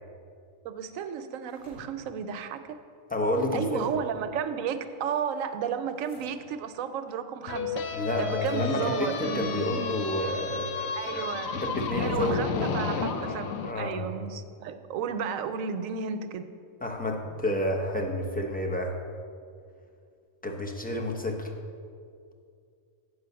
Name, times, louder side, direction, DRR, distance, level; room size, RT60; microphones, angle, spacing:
voice 1, 0.6-2.8 3.5-7.8 8.2-9.8 10.9-11.6 11.9-16.4, right 7 dB, 75° right, 10 dB, 1.0 m, -33 dB
sound 1, 1.3-1.8 3.3-4.1 5.9-6.3 8.3-8.7, equal, 50° left, 2.8 m, -54 dB
voice 2, 3.1-3.9 7.9-11.3 11.6-13.2 13.6-14.0 16.8-19.0 20.4-21.5, left 1 dB, 10° left, 1 dB, 0.5 m, -30 dB
sound 2, 7.5-13.7, left 5 dB, 80° left, 1.1 m, -32 dB
8.1 x 5.5 x 6.9 m, 2.3 s
omnidirectional pair, 1.4 m